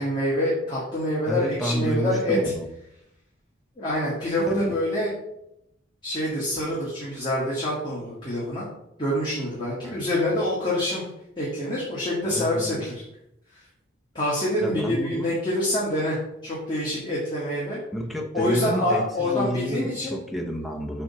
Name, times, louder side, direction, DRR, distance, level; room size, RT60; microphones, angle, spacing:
voice 1, 0.0-2.5 3.8-5.1 6.0-8.7 9.0-11.0 11.4-13.0 14.1-16.2 16.4-17.8 18.3-20.2, left 1 dB, 25° left, -7 dB, 1.9 m, -26 dB
voice 2, 1.3-2.7 4.5-4.7 9.8-10.1 12.2-12.8 14.6-15.3 17.9-21.0, equal, ahead, 2 dB, 0.9 m, -29 dB
7.6 x 3.5 x 5.7 m, 0.81 s
head